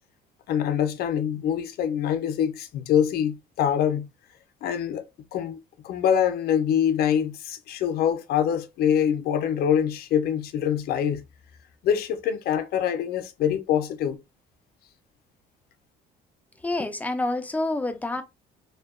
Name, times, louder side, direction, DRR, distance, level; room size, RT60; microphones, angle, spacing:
voice 1, 0.5-4.1 4.6-5.1 5.3-5.6 5.8-11.2 11.8-14.2, left 9 dB, 65° left, 0.4 m, -24 dB
voice 2, 16.6-18.2, left 2 dB, 10° left, 0.4 m, -27 dB
2.7 x 2.2 x 2.3 m
cardioid pair, 110°, 17 cm